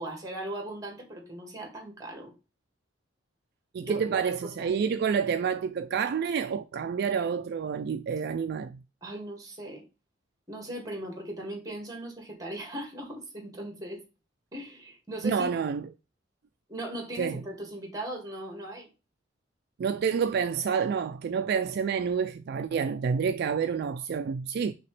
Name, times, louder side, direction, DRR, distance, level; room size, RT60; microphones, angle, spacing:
voice 1, 0.0-2.3 3.8-4.8 9.0-9.9 10.5-14.0 14.5-15.5 16.7-18.9, right 1 dB, 20° right, 1.8 m, -38 dB
voice 2, 3.7-8.8 15.2-15.8 17.2-17.3 19.8-24.7, right 6 dB, 55° right, 0.3 m, -28 dB
5.8 x 2.9 x 3.1 m
head